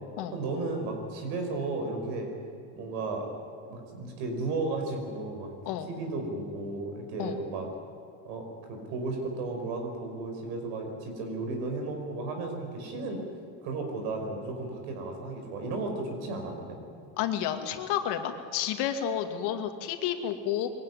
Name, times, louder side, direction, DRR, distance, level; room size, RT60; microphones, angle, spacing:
voice 1, 0.3-2.3 2.7-3.3 3.6-5.5 5.9-7.7 8.2-13.2 13.6-16.8, right 3 dB, 80° right, 3 dB, 5.4 m, -34 dB
voice 2, 17.2-20.7, left 10 dB, 70° left, 6 dB, 2.2 m, -30 dB
22.0 x 17.0 x 9.7 m, 2.3 s
supercardioid pair, 110°, 42 cm